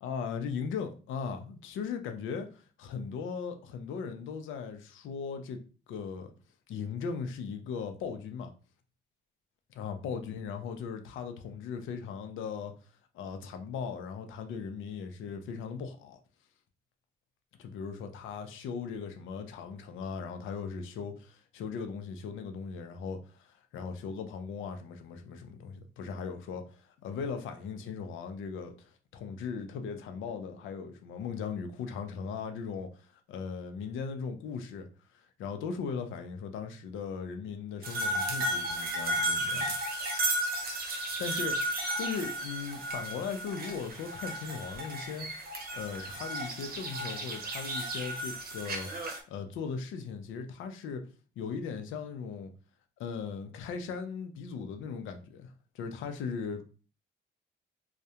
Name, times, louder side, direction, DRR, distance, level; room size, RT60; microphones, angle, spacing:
voice 1, 0.0-5.6 5.9-6.3 6.7-8.5 9.7-12.7 13.1-16.2 17.6-40.0 41.2-41.6 42.0-45.3 45.7-51.1 51.4-52.5 53.0-56.6, left 6 dB, 80° left, 0.5 m, -38 dB
sound 1, 37.8-49.2, right 1 dB, 50° right, 0.7 m, -34 dB
2.3 x 2.1 x 2.8 m
cardioid pair, 90°, 20 cm